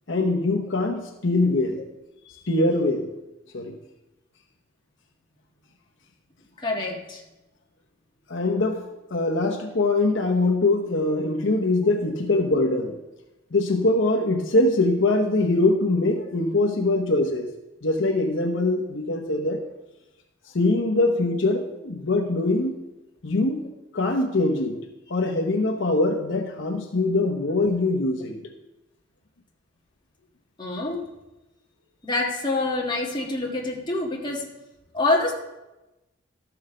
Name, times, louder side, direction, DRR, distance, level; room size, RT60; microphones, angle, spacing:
voice 1, 0.1-1.8 2.5-3.1 3.5-3.8 8.3-8.8 9.1-13.0 13.5-17.5 17.8-19.6 20.5-22.8 23.2-23.6 23.9-24.8 25.1-28.4, left 2 dB, 65° left, 2 dB, 0.9 m, -23 dB
voice 2, 6.6-7.2 30.6-31.1 32.0-34.4 34.9-35.3, left 2 dB, 20° left, -1 dB, 1.6 m, -26 dB
13.0 x 6.3 x 5.0 m, 1.0 s
head